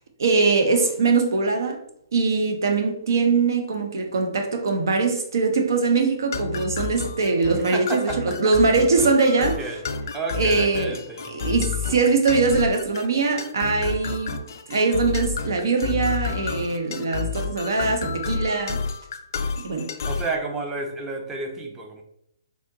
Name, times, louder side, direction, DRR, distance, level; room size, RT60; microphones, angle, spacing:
voice 1, 0.2-1.8 2.1-9.6 10.3-11.0 11.3-14.4 14.7-18.8 19.6-19.9, right 4 dB, 70° right, 0.6 m, -22 dB
sound 1, 6.3-20.4, left 5 dB, 60° left, 0.3 m, -30 dB
voice 2, 7.5-8.3 9.3-9.8 10.1-11.6 20.0-22.0, right 3 dB, 15° right, 0.6 m, -31 dB
3.4 x 2.8 x 2.6 m
hypercardioid pair, 135°, 2 cm